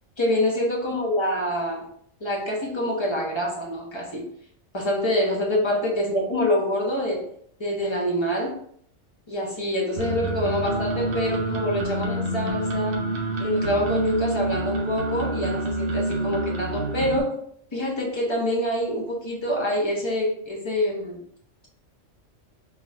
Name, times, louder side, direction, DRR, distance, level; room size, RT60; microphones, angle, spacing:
voice 1, 0.2-1.9 2.2-4.3 4.7-7.3 7.6-8.5 9.3-13.0 13.4-17.4 17.7-21.2, left 1 dB, 25° left, -3 dB, 1.1 m, -26 dB
sound 1, 10.0-17.2, right 1 dB, 55° right, 0.8 m, -27 dB
3.8 x 2.9 x 3.9 m, 0.65 s
omnidirectional pair, 1.3 m